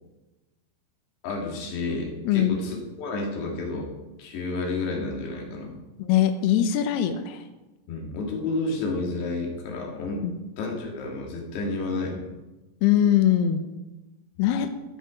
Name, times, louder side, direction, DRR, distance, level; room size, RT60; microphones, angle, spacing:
voice 1, 1.2-3.9 4.2-5.7 7.9-10.3 10.6-12.3 14.4-14.5, left 3 dB, 65° left, 0 dB, 3.8 m, -30 dB
voice 2, 2.2-2.6 6.0-7.4 10.2-10.4 12.8-13.6 14.4-14.7, left 10 dB, 85° left, 8 dB, 2.3 m, -22 dB
16.5 x 5.5 x 5.1 m, 1.1 s
omnidirectional pair, 5.6 m